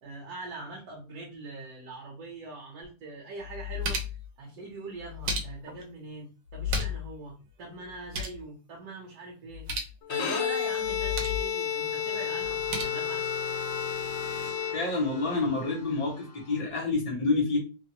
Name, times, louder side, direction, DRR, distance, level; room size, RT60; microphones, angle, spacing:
voice 1, 0.0-4.1 4.4-9.7 10.1-13.3, right 2 dB, 60° right, -2 dB, 1.2 m, -42 dB
sound 1, 2.8-2.9 3.4-4.3 5.0-5.8 6.5-7.1 7.4-7.5 7.8-8.4 9.5-10.0 10.8-11.5 12.4-12.8, left 2 dB, 90° right, 1.4 m, -33 dB
Bowed string instrument, 10.0-15.3, left 8 dB, 65° left, 0.8 m, -31 dB
sound 2, 11.6-16.6, left 3 dB, 85° left, 1.6 m, -42 dB
voice 2, 14.7-17.6, left 3 dB, 45° left, -3 dB, 0.4 m, -28 dB
3.6 x 2.0 x 2.8 m, 0.32 s
omnidirectional pair, 1.9 m